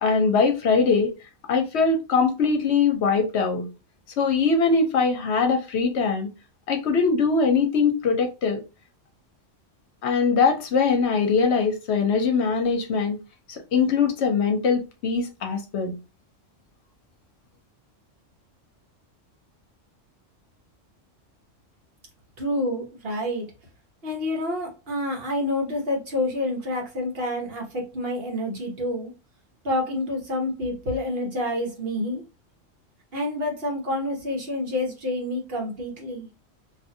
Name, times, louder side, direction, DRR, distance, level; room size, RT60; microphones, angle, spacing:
voice 1, 0.0-1.1 1.5-3.7 4.2-6.3 6.7-8.6 10.0-13.2 13.5-15.9, left 5 dB, 65° left, 0.9 m, -22 dB
voice 2, 22.4-23.5 24.0-29.1 29.6-32.2 33.1-36.3, left 1 dB, 55° right, 1.1 m, -28 dB
2.5 x 2.4 x 2.6 m
omnidirectional pair, 1.3 m